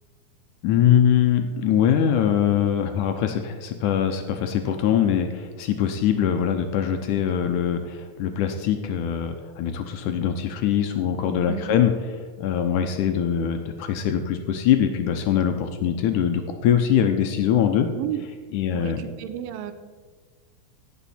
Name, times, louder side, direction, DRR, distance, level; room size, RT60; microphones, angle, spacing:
voice 1, 0.6-11.9 12.4-17.9 18.5-19.0, left 9 dB, 85° left, 6 dB, 1.8 m, -22 dB
voice 2, 18.7-19.7, right 12 dB, 80° right, 10 dB, 2.3 m, -32 dB
17.0 x 6.3 x 4.2 m, 1.4 s
omnidirectional pair, 4.3 m